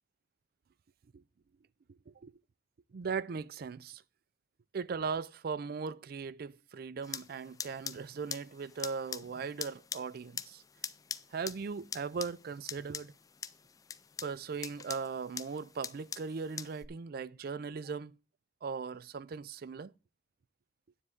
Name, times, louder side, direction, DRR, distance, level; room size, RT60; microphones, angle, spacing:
voice 1, 2.9-4.0 4.7-10.6 11.3-13.1 14.2-18.1 18.6-19.9, right 5 dB, 60° right, 0.4 m, -38 dB
sound 1, 7.0-16.9, left 6 dB, 20° left, 0.4 m, -44 dB
9.9 x 7.9 x 3.6 m
head